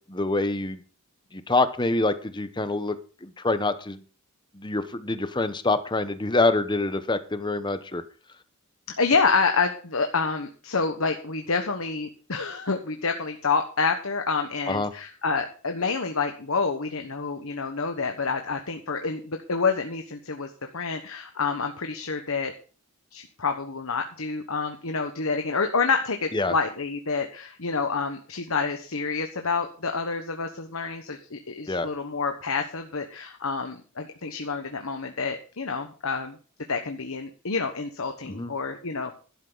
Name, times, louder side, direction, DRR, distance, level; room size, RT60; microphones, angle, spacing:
voice 1, 0.1-0.8 1.3-4.0 4.5-8.0 14.7-14.9 26.3-26.5 31.7-31.9 38.3-38.5, left 2 dB, 20° left, 11 dB, 0.9 m, -26 dB
voice 2, 9.0-22.5 23.1-36.3 36.7-39.1, left 4 dB, 70° left, 5 dB, 1.2 m, -28 dB
12.5 x 12.0 x 4.0 m, 0.38 s
head